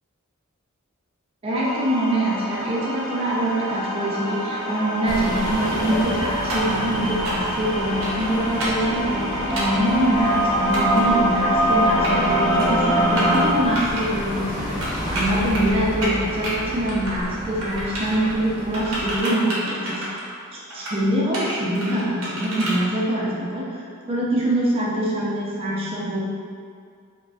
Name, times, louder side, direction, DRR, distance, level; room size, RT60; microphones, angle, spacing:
voice 1, 1.4-14.7 15.1-20.0 20.5-26.2, right 1 dB, 25° right, -6 dB, 0.4 m, -24 dB
sound 1, 1.5-13.5, equal, 80° left, 0.6 m, -24 dB
sound 2, 5.0-19.2, equal, 20° left, 0.7 m, -31 dB
sound 3, 6.5-6.8 7.2-7.5 8.0-8.3 8.6-8.8 9.6-9.8 10.7-11.0 11.8-12.3 12.6-12.8 13.2-13.4 13.8-14.0 14.8-15.7 16.0-16.5 16.9-17.4 17.6-18.3 18.7-20.3 20.7-21.0 21.3-22.8, right 1 dB, 80° right, 0.6 m, -29 dB
2.4 x 2.2 x 2.3 m, 2.2 s
head